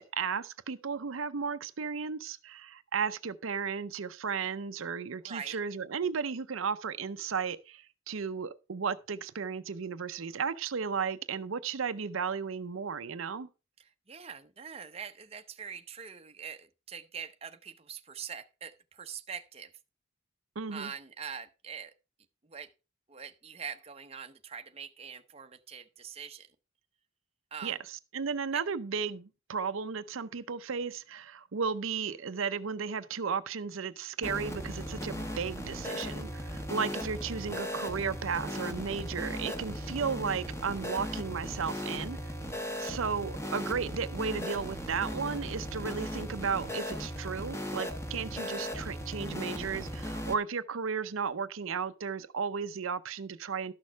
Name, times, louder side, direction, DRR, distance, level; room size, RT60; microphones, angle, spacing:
voice 1, 0.0-13.5 20.6-20.9 27.6-27.8 28.1-42.2 42.8-53.7, right 6 dB, 75° right, 0.6 m, -34 dB
voice 2, 5.2-5.6 13.8-19.7 20.7-21.9 22.4-22.7 23.1-26.5 27.5-27.8 28.5-28.6, right 7 dB, 30° right, 0.7 m, -43 dB
sound 1, 34.2-50.3, equal, 15° left, 1.2 m, -37 dB
12.5 x 6.4 x 4.6 m
head